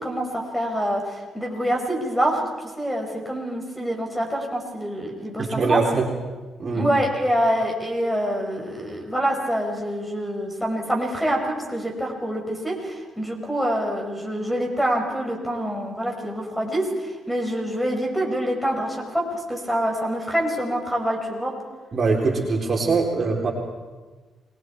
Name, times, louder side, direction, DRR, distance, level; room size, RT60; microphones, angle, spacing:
voice 1, 0.0-2.5 2.8-5.8 6.7-21.5, equal, 5° left, 2 dB, 5.4 m, -26 dB
voice 2, 5.4-6.1 6.6-6.9 21.9-23.5, right 4 dB, 40° right, -1 dB, 3.9 m, -22 dB
28.5 x 21.0 x 4.7 m, 1.3 s
cardioid pair, 90°, 0 cm